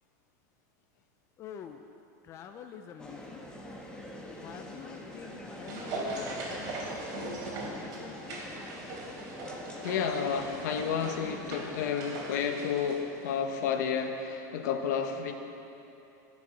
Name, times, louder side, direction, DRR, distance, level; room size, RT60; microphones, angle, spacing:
voice 1, 1.4-1.8 2.2-3.4 4.3-8.4, left 7 dB, 30° left, 5 dB, 0.6 m, -47 dB
sound 1, 3.0-11.9, left 1 dB, 10° left, 1.3 m, -45 dB
sound 2, 5.1-13.7 14.0-14.1, right 2 dB, 45° right, 3.4 m, -40 dB
voice 2, 9.8-15.3, left 7 dB, 75° left, 5 dB, 1.2 m, -31 dB
14.0 x 7.2 x 7.6 m, 2.9 s
supercardioid pair, 145°, 9 cm